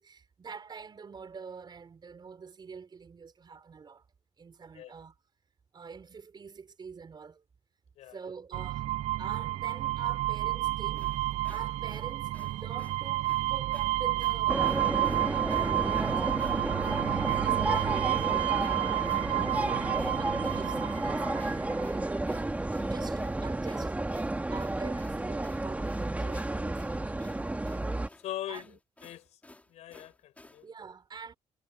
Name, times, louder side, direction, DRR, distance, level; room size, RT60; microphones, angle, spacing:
voice 1, 0.0-4.0 4.4-5.1 5.7-7.4 8.1-8.9 9.2-27.3 28.5-28.8 30.6-31.3, right 5 dB, 40° right, 4.8 m, -46 dB
sound 1, 8.5-21.9, right 16 dB, 70° right, 0.4 m, -30 dB
sound 2, 10.9-30.6, left 2 dB, 15° left, 5.6 m, -56 dB
sound 3, 14.5-28.1, right 2 dB, 15° right, 2.2 m, -32 dB
voice 2, 28.2-28.7 29.0-29.3 29.7-30.7, left 13 dB, 80° left, 7.6 m, -41 dB
cardioid pair, 80°, 11 cm